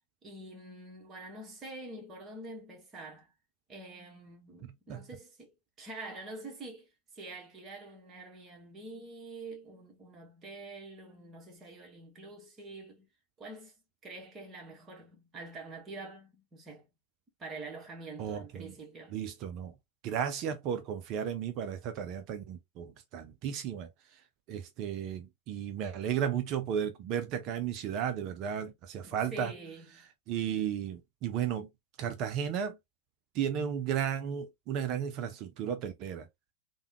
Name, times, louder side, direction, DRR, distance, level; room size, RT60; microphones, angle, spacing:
voice 1, 0.2-3.3 3.7-13.1 13.4-13.7 14.0-16.9 17.4-19.2 29.0-30.1, right 2 dB, 25° right, 1.3 m, -46 dB
voice 2, 4.6-5.0 18.2-18.7 19.1-19.7 20.0-24.2 24.5-29.5 30.3-31.7 32.0-32.8 33.3-36.3, right 8 dB, 40° right, 0.5 m, -34 dB
3.4 x 2.3 x 2.8 m
figure-of-eight pair, 90°, 0 cm